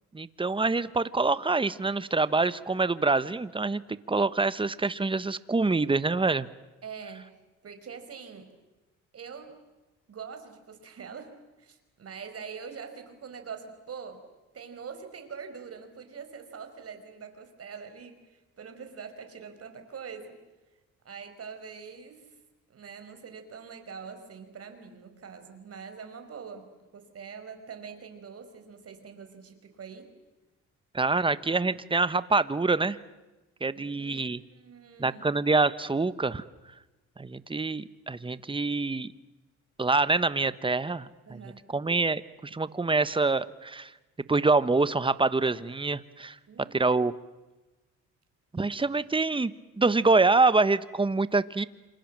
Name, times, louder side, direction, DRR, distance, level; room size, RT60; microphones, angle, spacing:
voice 1, 0.1-3.8 4.1-6.5 30.9-33.0 33.6-34.4 35.0-36.4 37.2-39.1 39.8-41.4 41.7-43.9 44.3-46.3 46.7-47.1 48.5-51.6, right 3 dB, 15° right, 15 dB, 1.2 m, -26 dB
voice 2, 6.8-7.3 7.6-8.5 9.1-9.6 10.1-14.3 14.5-20.4 21.0-22.3 22.7-30.1 33.7-35.3 41.3-41.7 46.5-47.0, right 6 dB, 50° right, 7 dB, 5.2 m, -44 dB
27.5 x 26.5 x 7.6 m, 1.1 s
cardioid pair, 90°, 30 cm